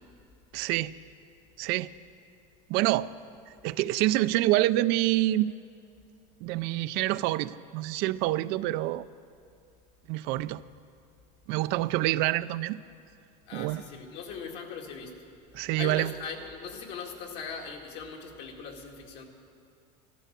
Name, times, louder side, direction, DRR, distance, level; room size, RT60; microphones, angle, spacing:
voice 1, 0.5-0.9 1.6-1.9 2.7-3.1 3.6-5.5 6.4-9.1 10.1-10.6 11.5-12.8 13.5-13.8 15.5-16.1, right 16 dB, 55° right, 15 dB, 0.4 m, -27 dB
voice 2, 13.5-15.1 15.8-19.3, left 5 dB, 65° left, 1 dB, 2.2 m, -40 dB
13.5 x 12.5 x 6.6 m, 2.4 s
supercardioid pair, 130°, 20 cm